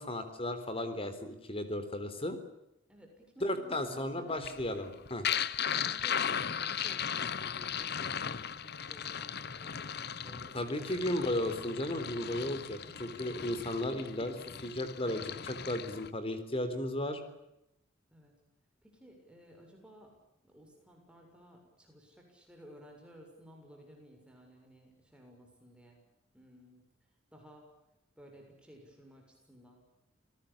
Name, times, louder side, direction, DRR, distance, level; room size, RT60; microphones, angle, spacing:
voice 1, 0.0-2.4 3.4-5.3 10.5-17.2, left 1 dB, 30° left, 10 dB, 3.8 m, -35 dB
voice 2, 2.9-4.3 5.8-11.4 12.8-13.0 18.1-18.3 18.8-20.1 20.4-26.0 26.3-26.8 27.3-27.7 28.2-29.8, equal, 5° right, 1 dB, 6.8 m, -56 dB
sound 1, 4.3-16.1, left 8 dB, 55° left, 1.0 m, -37 dB
29.0 x 19.0 x 8.7 m, 0.86 s
head